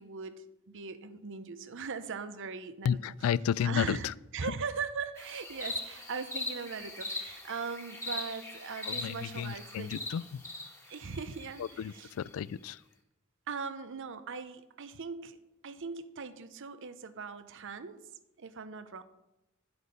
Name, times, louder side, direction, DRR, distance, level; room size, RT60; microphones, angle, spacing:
voice 1, 0.0-3.1 3.6-9.9 10.9-12.1 13.5-15.4 15.6-18.0 18.4-19.0, right 5 dB, 60° right, 0.7 m, -40 dB
voice 2, 2.8-4.1 8.9-10.4 11.6-12.8, left 8 dB, 75° left, 0.3 m, -32 dB
sound 1, 5.2-12.3, left 2 dB, 15° left, 1.7 m, -41 dB
10.5 x 8.0 x 5.2 m
head